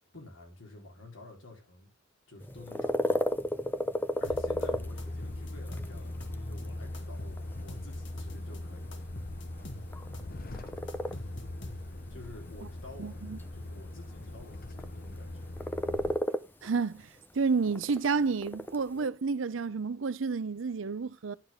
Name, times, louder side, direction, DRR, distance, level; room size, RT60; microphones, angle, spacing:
voice 1, 0.1-1.9 2.3-3.4 4.2-9.3 12.1-13.2 13.5-15.5, left 2 dB, 85° left, 3.7 m, -50 dB
sound 1, 2.4-19.1, left 1 dB, 10° left, 0.6 m, -35 dB
sound 2, 4.2-6.6 6.9-8.6 8.9-12.1, left 1 dB, 65° left, 1.8 m, -46 dB
Truck, 4.3-16.2, left 1 dB, 50° left, 0.8 m, -41 dB
voice 2, 13.0-13.4 16.6-17.1 17.3-21.3, right 4 dB, 85° right, 0.6 m, -30 dB
11.5 x 6.5 x 3.6 m
head